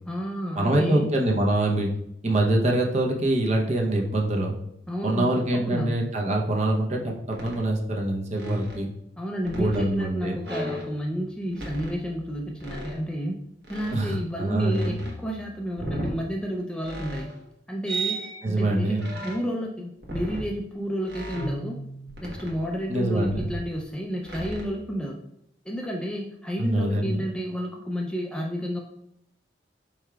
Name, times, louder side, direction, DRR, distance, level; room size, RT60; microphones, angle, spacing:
voice 1, 0.0-1.1 4.9-5.9 9.2-13.4 13.7-17.3 17.7-21.8 22.2-25.2 25.7-28.8, equal, 5° left, -1 dB, 0.4 m, -31 dB
voice 2, 0.6-1.9 2.2-4.6 5.0-8.9 9.5-10.4 13.9-14.9 18.4-19.1 22.9-23.5 26.6-27.3, right 1 dB, 40° right, 0 dB, 0.7 m, -24 dB
sound 1, 7.3-7.7 8.4-9.9 10.4-11.3 11.5-13.0 13.6-14.3 14.7-16.1 16.8-17.4 17.9-18.5 19.0-19.6 20.0-20.5 21.1-22.8 23.2-23.7 24.3-24.7, right 1 dB, 65° right, 1.1 m, -36 dB
4.8 x 4.4 x 2.3 m, 0.77 s
head